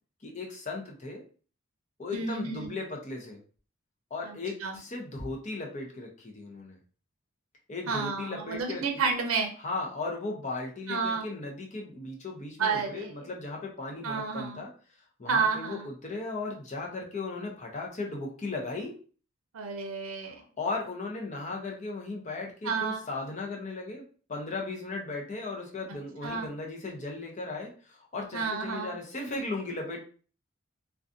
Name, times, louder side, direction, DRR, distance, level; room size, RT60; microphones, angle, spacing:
voice 1, 0.2-1.2 2.0-3.4 4.1-6.8 7.7-8.8 9.6-14.7 15.2-18.9 20.2-24.0 24.3-30.0, left 3 dB, 35° left, 0 dB, 0.6 m, -36 dB
voice 2, 2.1-2.7 4.2-4.3 4.6-4.7 7.9-9.5 10.9-11.2 12.6-13.3 14.0-14.6 15.3-15.9 19.5-20.4 22.6-23.0 26.2-26.5 28.3-28.9, right 5 dB, 85° right, 3 dB, 0.5 m, -30 dB
2.5 x 2.3 x 2.5 m, 0.40 s
head